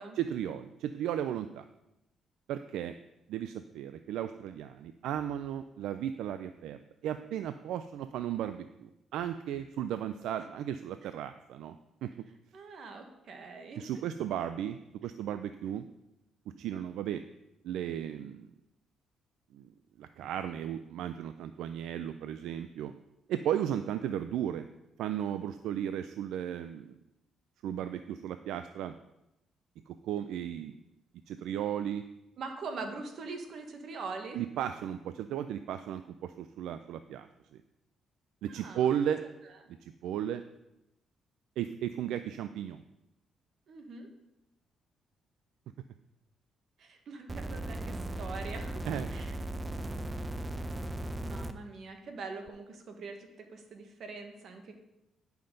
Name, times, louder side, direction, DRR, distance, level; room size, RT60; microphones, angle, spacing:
voice 1, 0.2-1.6 2.5-2.9 3.3-11.8 12.0-12.3 13.8-15.9 16.6-17.2 17.6-18.5 19.5-19.7 20.0-22.9 23.3-24.7 25.0-27.0 27.6-28.9 29.9-30.8 31.3-32.1 34.3-37.6 38.4-39.2 39.8-40.4 41.6-42.8 48.9-49.1, right 10 dB, 85° right, 10 dB, 0.3 m, -35 dB
voice 2, 12.5-13.9 32.4-34.4 38.6-38.9 43.7-44.1 46.8-49.4 51.2-54.7, right 4 dB, 65° right, 4 dB, 1.3 m, -43 dB
sound 1, 47.3-51.5 52.5-52.6, right 1 dB, 20° right, 0.6 m, -37 dB
10.0 x 5.7 x 3.8 m, 0.91 s
cardioid pair, 90°, 0 cm